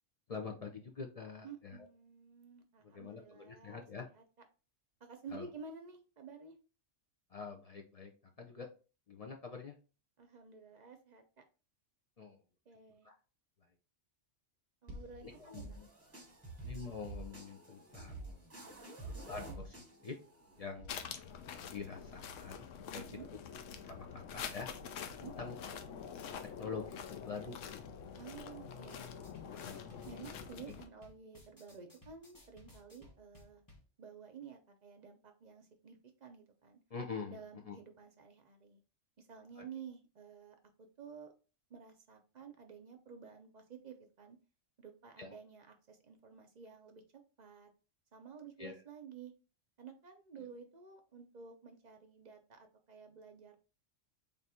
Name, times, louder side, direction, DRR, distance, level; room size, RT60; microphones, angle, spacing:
voice 1, 0.3-1.9 2.8-4.1 5.3-5.4 7.3-8.1 8.4-8.7 9.1-9.8 12.2-12.4 13.0-13.1 15.2-15.9 16.6-18.4 19.1-20.2 20.6-21.0 21.7-23.0 23.8-24.7 25.2-25.6 26.6-27.8 29.5-29.8 36.9-37.8 39.6-39.7 45.2-45.3 48.6-48.8 50.4-50.5, left 5 dB, 50° left, 2 dB, 0.4 m, -46 dB
voice 2, 1.4-3.9 4.1-4.2 5.1-6.6 10.2-11.4 12.7-13.1 14.8-15.6 18.6-19.0 22.9-23.3 25.2-25.3 28.1-29.2 30.1-33.6 34.0-36.8 37.3-38.8 39.2-41.3 41.7-44.4 44.8-47.7 48.1-49.3 49.8-53.5, right 6 dB, 50° right, 5 dB, 0.6 m, -52 dB
sound 1, 14.9-20.9, right 2 dB, 15° right, 0.8 m, -49 dB
sound 2, 20.9-30.9, left 7 dB, 85° left, 0.9 m, -46 dB
sound 3, 28.9-33.9, left 1 dB, 20° left, 0.9 m, -61 dB
3.5 x 2.6 x 4.2 m, 0.34 s
omnidirectional pair, 1.3 m